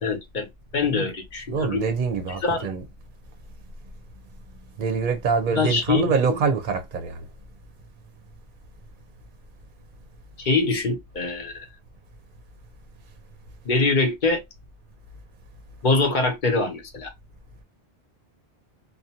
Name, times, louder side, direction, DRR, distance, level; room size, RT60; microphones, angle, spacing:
voice 1, 0.0-0.5 0.7-1.8 2.4-2.7 5.5-6.4 10.4-11.6 13.6-14.4 15.8-17.1, left 3 dB, 55° left, 0.8 m, -24 dB
voice 2, 1.5-2.8 4.8-7.3, right 5 dB, 55° right, 0.7 m, -25 dB
2.5 x 2.2 x 2.7 m
omnidirectional pair, 1.0 m